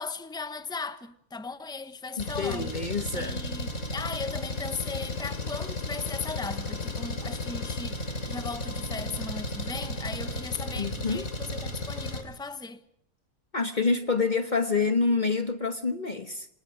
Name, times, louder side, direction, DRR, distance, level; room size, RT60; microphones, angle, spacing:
voice 1, 0.0-2.7 3.1-12.8, left 4 dB, 5° left, 1.3 m, -37 dB
Engine, 2.2-12.2, left 2 dB, 90° left, 3.9 m, -34 dB
voice 2, 2.2-3.4 10.8-11.3 13.5-16.5, left 4 dB, 35° left, 1.3 m, -27 dB
28.0 x 26.0 x 5.0 m
omnidirectional pair, 1.4 m